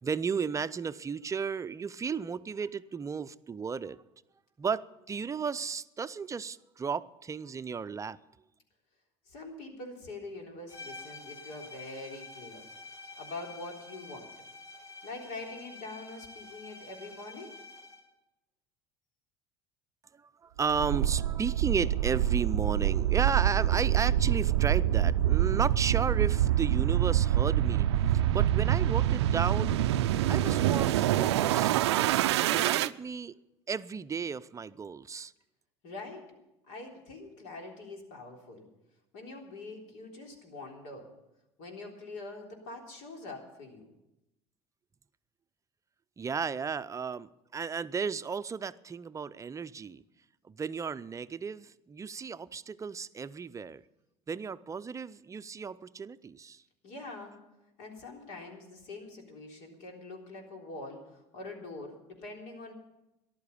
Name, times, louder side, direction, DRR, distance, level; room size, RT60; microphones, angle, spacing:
voice 1, 0.0-4.0 4.6-8.2 20.2-27.9 28.3-29.8 30.3-32.1 32.3-33.4 33.7-35.3 46.2-50.0 50.4-53.8 54.3-56.6, right 6 dB, 25° right, 0.5 m, -34 dB
voice 2, 9.3-12.6 13.2-14.3 15.0-17.6 35.8-36.4 36.7-38.7 39.1-41.1 41.6-43.9 56.8-57.4 57.8-62.7, left 2 dB, 70° left, 3.7 m, -44 dB
sound 1, 10.7-18.1, left 3 dB, 25° left, 3.2 m, -48 dB
sound 2, 20.7-32.9, right 12 dB, 90° right, 0.4 m, -26 dB
14.5 x 11.5 x 7.0 m
hypercardioid pair, 85°, 14 cm